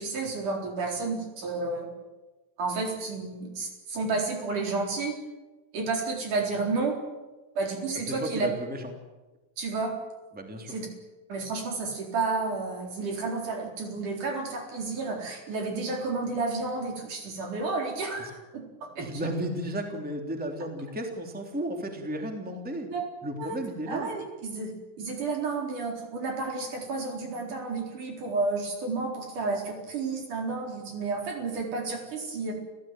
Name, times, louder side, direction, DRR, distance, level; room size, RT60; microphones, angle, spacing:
voice 1, 0.0-1.9 2.6-5.2 5.7-7.0 7.6-8.5 9.6-10.0 10.7-10.9 11.3-18.6 19.0-19.1 22.9-23.0 23.4-23.6 23.9-24.7 25.0-32.5, right 3 dB, 50° right, 1 dB, 5.5 m, -31 dB
voice 2, 8.1-8.9 10.3-10.7 18.2-18.3 19.0-22.9 23.2-24.1, right 1 dB, 5° right, 3 dB, 2.5 m, -34 dB
29.5 x 16.0 x 9.1 m, 1.2 s
omnidirectional pair, 4.6 m